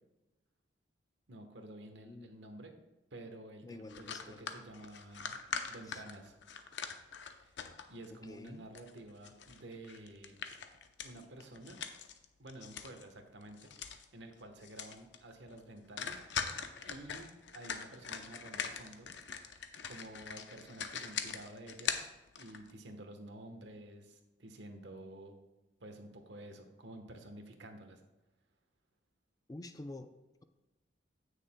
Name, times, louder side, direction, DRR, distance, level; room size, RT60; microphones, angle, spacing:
voice 1, 1.3-2.7 3.1-5.4 5.7-6.3 7.2-7.6 7.9-10.4 11.0-11.8 12.4-16.2 16.8-22.1 22.4-25.4 25.8-28.0, right 1 dB, 70° right, 5 dB, 1.2 m, -51 dB
voice 2, 3.6-4.7 5.8-6.0 8.1-8.7 29.5-30.1, left 2 dB, 20° left, 9 dB, 0.4 m, -48 dB
sound 1, 3.9-8.1 8.5-13.1 13.4-14.1 14.3-14.4 14.6-15.2 15.5-15.6 16.0-22.7, left 6 dB, 70° left, 0.7 m, -42 dB
16.0 x 6.5 x 2.2 m, 1.0 s
head